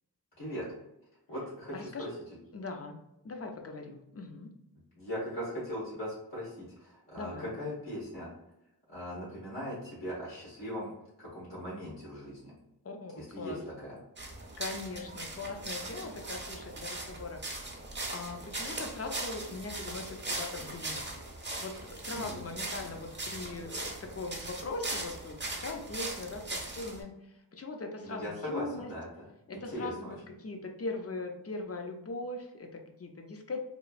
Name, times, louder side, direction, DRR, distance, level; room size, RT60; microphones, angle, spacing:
voice 1, 0.4-0.7 1.3-2.1 5.0-8.3 8.9-10.9 11.2-12.5 13.1-14.0 22.1-22.4 28.0-29.1 29.5-30.1, equal, 80° left, -10 dB, 1.3 m, -39 dB
voice 2, 1.7-2.1 2.5-3.0 3.2-4.5 7.2-7.5 12.8-13.6 14.6-17.7 18.1-21.1 21.6-28.9 29.5-33.6, left 3 dB, 35° left, 4 dB, 0.5 m, -40 dB
sound 1, 14.2-27.0, right 2 dB, 25° right, 0.5 m, -39 dB
3.0 x 2.3 x 2.4 m, 0.86 s
wide cardioid pair, 50°, 41 cm